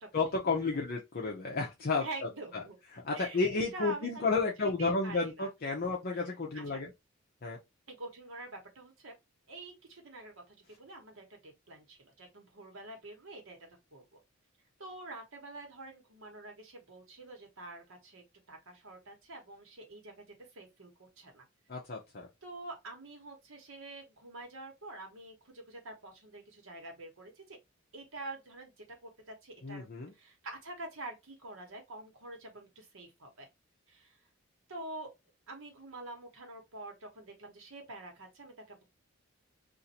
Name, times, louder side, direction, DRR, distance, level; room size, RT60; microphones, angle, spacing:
voice 1, 0.1-2.0 2.9-6.9 7.4-7.6 21.7-22.3 29.6-30.1, left 3 dB, 45° left, 0.7 m, -32 dB
voice 2, 2.0-2.8 3.1-4.2 4.6-5.5 6.1-6.8 7.9-9.1 9.5-14.2 14.8-20.1 20.5-21.4 22.4-27.6 27.9-28.7 29.0-29.9 30.1-33.5 33.9-34.2 34.7-35.1 35.5-38.8, right 2 dB, 70° right, 1.2 m, -46 dB
2.6 x 2.5 x 4.1 m
head